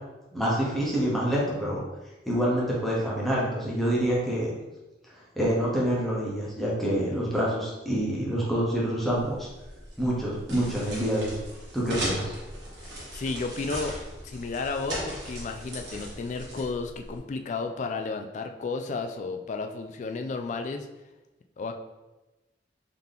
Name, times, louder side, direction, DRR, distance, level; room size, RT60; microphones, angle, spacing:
voice 1, 0.3-1.8 2.3-4.5 5.4-9.5 10.0-11.4 11.7-12.3, equal, ahead, -6 dB, 0.9 m, -27 dB
sound 1, 9.1-17.2, right 1 dB, 75° right, 1.3 m, -38 dB
voice 2, 12.8-14.0 14.2-20.9 21.6-21.8, left 4 dB, 40° left, 5 dB, 0.3 m, -33 dB
3.9 x 2.9 x 3.4 m, 1.1 s
head